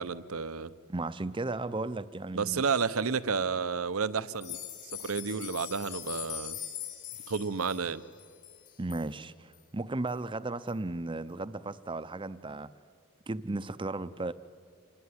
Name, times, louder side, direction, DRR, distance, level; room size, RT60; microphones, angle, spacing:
voice 1, 0.0-0.7 2.3-6.6 7.3-8.0, right 5 dB, 70° right, 15 dB, 0.8 m, -31 dB
voice 2, 0.9-2.6 8.8-12.7 13.3-14.3, right 2 dB, 20° right, 14 dB, 0.7 m, -35 dB
sound 1, 4.3-9.1 9.5-9.6 10.1-10.2 10.7-10.8, left 11 dB, 55° left, 3.4 m, -42 dB
27.5 x 20.0 x 9.7 m, 2.2 s
head